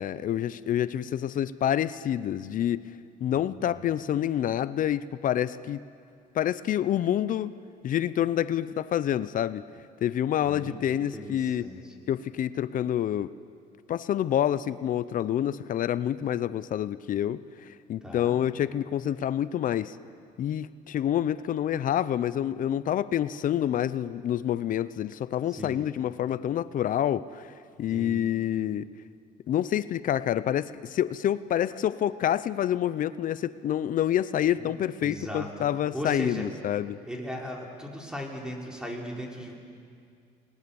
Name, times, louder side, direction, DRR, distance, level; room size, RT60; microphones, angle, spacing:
voice 1, 0.0-2.9 3.2-5.8 6.3-7.5 7.8-9.6 10.0-11.7 12.1-13.3 13.9-20.0 20.4-27.5 27.8-28.9 29.5-37.0, left 10 dB, 55° left, 16 dB, 0.6 m, -27 dB
voice 2, 3.3-3.8 10.4-11.9 18.0-18.4 25.5-25.8 27.9-28.2 34.6-34.7 35.0-36.5 37.1-39.5, equal, 5° right, 0 dB, 4.0 m, -38 dB
29.0 x 20.0 x 7.0 m, 2.3 s
cardioid pair, 110°, 17 cm